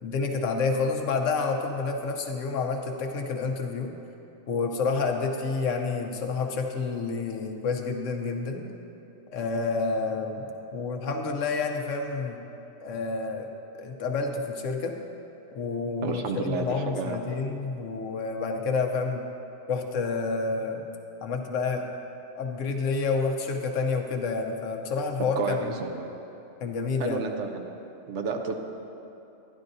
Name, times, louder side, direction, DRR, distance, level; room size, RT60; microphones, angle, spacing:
voice 1, 0.0-3.9 4.5-8.7 9.3-12.4 12.8-13.5 13.8-14.9 15.5-19.2 19.7-20.8 21.2-21.9 22.4-25.8 26.6-27.2, left 4 dB, 80° left, 4 dB, 1.1 m, -29 dB
voice 2, 16.0-17.2 25.4-26.1 27.0-27.7 28.1-28.6, right 4 dB, 70° right, 4 dB, 1.0 m, -31 dB
11.5 x 11.0 x 2.6 m, 2.9 s
omnidirectional pair, 1.3 m